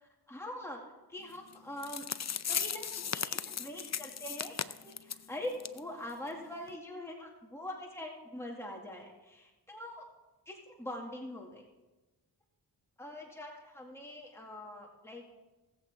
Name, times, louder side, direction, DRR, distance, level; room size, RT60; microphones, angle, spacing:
voice 1, 0.0-0.8 1.1-2.1 2.5-10.1 10.5-11.6 13.0-15.4, left 1 dB, 5° left, -1 dB, 2.1 m, -43 dB
sound 1, 1.5-1.6 1.8-5.2 5.6-5.8 6.1-6.2 6.7-6.8, left 7 dB, 40° left, 0.6 m, -36 dB
20.5 x 7.9 x 3.5 m, 1.1 s
cardioid pair, 45°, 41 cm